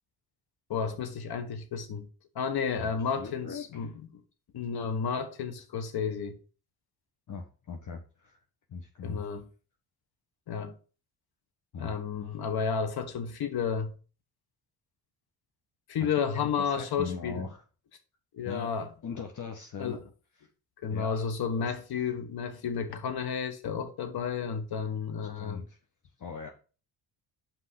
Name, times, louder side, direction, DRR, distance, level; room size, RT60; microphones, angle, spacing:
voice 1, 0.7-2.1 2.3-3.9 4.5-6.4 9.0-9.4 10.5-10.7 11.8-13.9 15.9-17.4 18.3-18.9 19.8-20.0 20.8-25.6, left 6 dB, 60° left, 1.6 m, -32 dB
voice 2, 3.2-3.9 7.3-8.4 8.7-9.3 11.7-11.9 16.2-17.6 18.4-20.0 20.4-20.5 20.9-21.2 21.6-21.7 25.3-25.8 26.2-26.5, left 5 dB, 45° left, 1.3 m, -40 dB
5.8 x 4.8 x 6.4 m
supercardioid pair, 60°, 41 cm